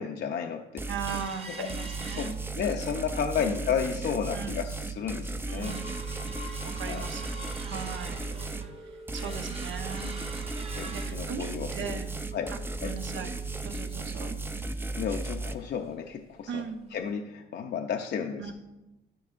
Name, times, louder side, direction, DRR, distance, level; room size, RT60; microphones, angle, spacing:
voice 1, 0.0-0.9 1.5-1.7 2.2-5.8 6.9-7.1 9.2-9.4 10.7-12.0 12.3-12.5 12.8-13.2 14.3-14.4 15.0-16.6 16.9-18.5, left 7 dB, 55° left, 3 dB, 0.6 m, -33 dB
sound 1, 0.8-1.3 1.7-8.7 9.1-15.5, right 3 dB, 10° right, 0.5 m, -35 dB
voice 2, 0.9-2.4 3.4-3.6 4.3-4.5 5.5-6.0 6.8-7.3 7.6-8.2 9.1-10.3 10.9-12.2 12.5-13.3 13.6-14.4 16.5-16.9 18.4-18.5, right 6 dB, 70° right, 5 dB, 1.0 m, -38 dB
sound 2, 1.1-2.9 3.3-3.4 3.8-4.1 4.6-4.7 5.1-15.6 15.9-16.0 16.4-16.6 17.1-17.2, right 1 dB, 30° right, 1.1 m, -45 dB
12.5 x 5.4 x 2.5 m, 1.0 s
cardioid pair, 90°, 20 cm